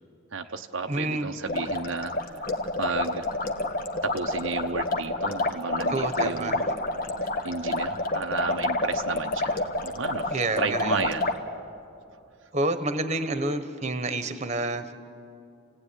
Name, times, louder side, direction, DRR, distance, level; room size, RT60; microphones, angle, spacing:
voice 1, 0.3-3.3 4.0-6.7 7.2-11.3, right 4 dB, 70° right, 5 dB, 0.9 m, -33 dB
voice 2, 0.9-1.3 5.9-6.6 10.3-11.0 12.5-14.8, right 2 dB, 35° right, 9 dB, 1.3 m, -28 dB
sound 1, 1.4-11.4, left 2 dB, 45° left, 1.5 m, -28 dB
29.0 x 17.5 x 9.9 m, 2.6 s
head